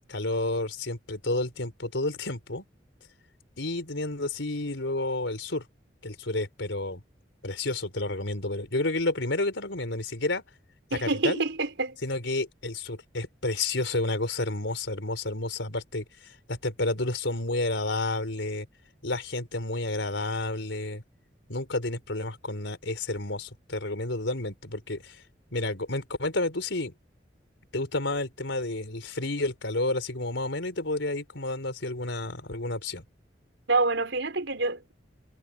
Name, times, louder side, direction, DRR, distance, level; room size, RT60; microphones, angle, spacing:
voice 1, 0.0-2.6 3.6-5.7 6.0-7.0 7.4-10.4 10.9-11.4 12.0-18.7 19.0-21.0 21.5-25.2 25.5-26.9 27.7-33.0, left 2 dB, 90° left, 4.4 m, -30 dB
voice 2, 10.9-12.0 33.7-34.9, right 3 dB, 85° right, 4.4 m, -27 dB
head